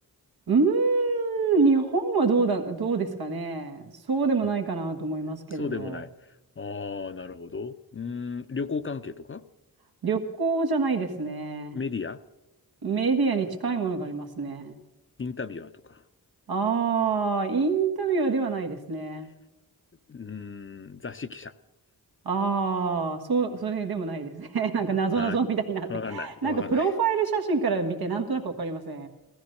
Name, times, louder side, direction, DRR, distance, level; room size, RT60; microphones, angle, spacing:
voice 1, 0.5-6.0 10.0-11.8 12.8-14.8 16.5-19.3 22.2-29.1, right 4 dB, 80° right, 5 dB, 1.6 m, -26 dB
voice 2, 5.5-9.4 11.7-12.2 15.2-16.0 20.1-21.5 25.1-25.4 25.9-26.9, left 5 dB, 35° left, 11 dB, 0.6 m, -35 dB
16.0 x 13.5 x 6.5 m, 1.0 s
cardioid pair, 60°, 37 cm